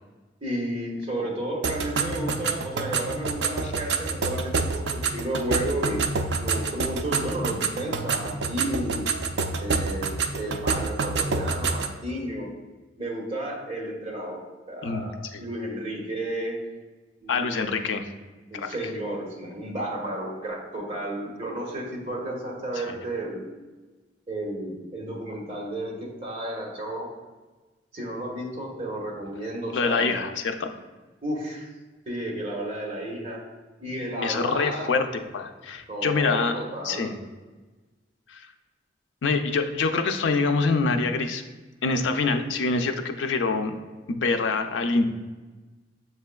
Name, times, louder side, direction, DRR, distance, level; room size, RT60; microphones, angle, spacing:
voice 1, 0.4-4.8 5.1-6.0 6.4-9.0 9.6-12.5 13.0-16.6 17.2-17.7 18.5-23.4 24.3-27.1 27.9-30.2 31.2-31.7 32.1-33.4 33.8-34.9 35.9-37.1, right 1 dB, 30° right, -3 dB, 1.1 m, -32 dB
sound 1, 1.6-12.0, right 4 dB, 65° right, 0.4 m, -28 dB
voice 2, 17.3-18.0 18.5-18.8 22.8-23.0 29.7-30.7 34.2-35.1 35.3-36.6 36.8-37.1 38.3-38.4 39.2-41.4 41.8-43.7 44.1-45.1, left 4 dB, 85° left, 6 dB, 0.4 m, -25 dB
7.2 x 3.3 x 2.2 m, 1.2 s
head